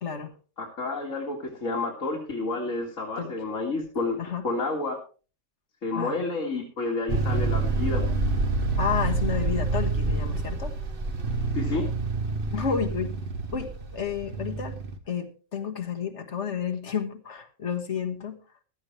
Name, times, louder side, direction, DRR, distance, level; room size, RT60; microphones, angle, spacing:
voice 1, 0.0-0.3 3.2-3.3 4.2-4.4 5.9-6.2 8.8-10.7 12.5-13.2 13.5-14.8 15.1-18.4, left 7 dB, 65° left, 6 dB, 1.7 m, -31 dB
voice 2, 0.6-4.2 4.4-5.0 5.8-8.1 11.5-11.9, left 3 dB, 85° left, -2 dB, 2.3 m, -30 dB
sound 1, 7.1-15.0, right 3 dB, 45° right, 1.4 m, -27 dB
15.5 x 12.5 x 3.2 m, 0.35 s
omnidirectional pair, 1.3 m